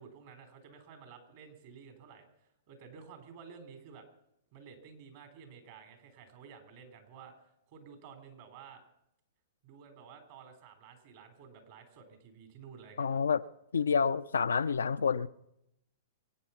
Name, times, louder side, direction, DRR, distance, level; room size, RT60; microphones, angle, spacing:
voice 1, 0.0-4.0 4.5-7.3 7.7-8.8 9.6-13.2, right 6 dB, 55° right, 4.1 m, -52 dB
voice 2, 13.0-13.4 13.7-15.3, left 6 dB, 80° left, 0.5 m, -28 dB
24.0 x 9.2 x 5.9 m
hypercardioid pair, 115°, 0 cm